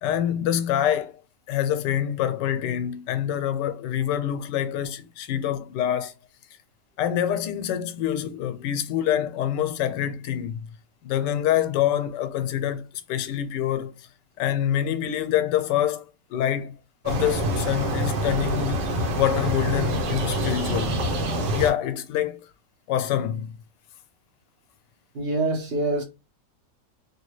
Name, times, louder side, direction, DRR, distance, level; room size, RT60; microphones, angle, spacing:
voice 1, 0.0-1.1 1.5-6.1 7.0-10.7 11.0-12.8 13.1-14.1 14.4-16.0 16.3-16.7 17.0-18.9 19.2-21.1 21.5-22.5 22.9-23.5, left 10 dB, 85° left, 1.2 m, -26 dB
sound 1, 17.1-21.7, right 1 dB, 80° right, 1.5 m, -26 dB
voice 2, 25.1-26.0, right 2 dB, 45° right, 0.9 m, -25 dB
3.4 x 2.7 x 3.1 m
omnidirectional pair, 1.8 m